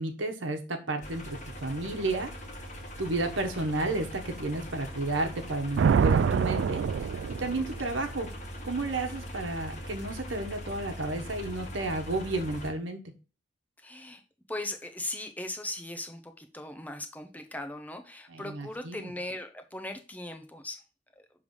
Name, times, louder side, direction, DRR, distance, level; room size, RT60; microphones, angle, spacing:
voice 1, 0.0-2.3 3.0-6.8 7.4-8.3 8.6-13.0 18.3-19.1, right 2 dB, 90° right, 5 dB, 1.1 m, -32 dB
sound 1, 1.0-12.7, equal, 40° left, 1.2 m, -41 dB
Thunder, 5.8-8.0, right 6 dB, 70° right, 0.3 m, -25 dB
voice 2, 13.8-14.2 14.5-20.8 21.2-21.3, left 1 dB, 10° left, 6 dB, 0.7 m, -39 dB
6.6 x 3.3 x 5.4 m, 0.32 s
head